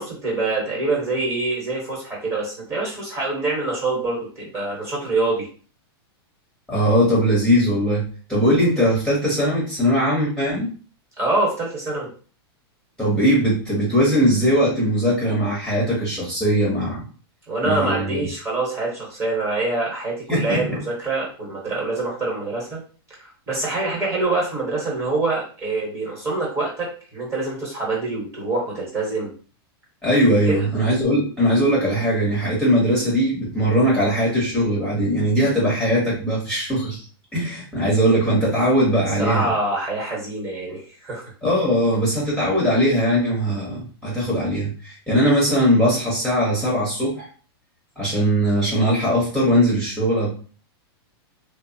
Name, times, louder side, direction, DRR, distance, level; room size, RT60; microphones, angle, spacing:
voice 1, 0.0-5.4 11.2-12.1 17.5-22.8 23.2-26.9 27.1-29.3 30.5-30.6 39.2-41.3, right 2 dB, 20° right, -3 dB, 1.1 m, -25 dB
voice 2, 6.7-10.7 13.0-17.0 17.6-18.2 20.3-20.6 30.0-37.0 37.3-39.5 41.4-47.3 48.0-50.3, equal, 5° left, -7 dB, 0.9 m, -20 dB
3.0 x 2.0 x 2.7 m, 0.39 s
supercardioid pair, 150°, 13 cm